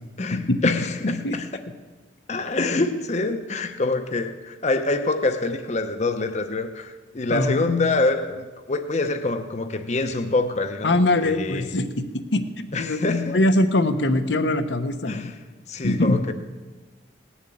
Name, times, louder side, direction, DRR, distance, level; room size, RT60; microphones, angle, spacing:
voice 1, 0.2-1.6 2.3-11.0 11.2-11.7 12.7-13.4 15.1-15.4 15.7-16.3, left 3 dB, 40° left, 0.7 m, -25 dB
voice 2, 1.0-1.3 7.3-7.7 10.8-11.9 12.3-13.0 13.3-15.3 15.8-16.2, left 1 dB, 85° left, 1.0 m, -22 dB
18.0 x 7.1 x 8.5 m
head